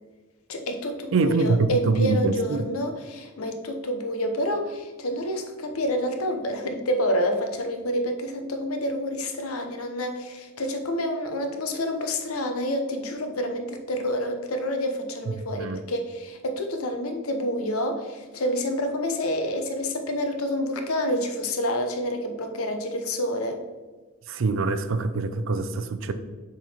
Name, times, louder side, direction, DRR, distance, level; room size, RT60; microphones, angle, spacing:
voice 1, 0.5-23.6, equal, 85° left, 6 dB, 0.8 m, -28 dB
voice 2, 1.1-2.6 15.3-15.8 24.3-26.1, right 3 dB, 65° right, 10 dB, 0.4 m, -24 dB
7.3 x 3.9 x 4.3 m, 1.3 s
head